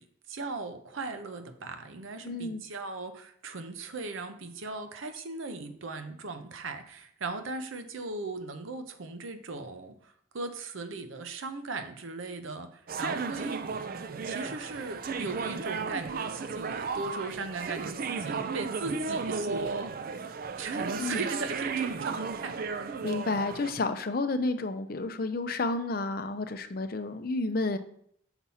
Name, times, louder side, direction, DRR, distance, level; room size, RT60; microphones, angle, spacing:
voice 1, 0.0-13.6 14.2-19.9 20.6-23.0, right 3 dB, 75° right, 8 dB, 0.7 m, -38 dB
voice 2, 2.2-2.6 21.0-21.3 23.0-27.8, left 3 dB, 45° left, 9 dB, 0.5 m, -31 dB
sound 1, 12.9-23.7, right 5 dB, 45° right, 0.4 m, -34 dB
6.0 x 4.2 x 5.5 m, 0.66 s
head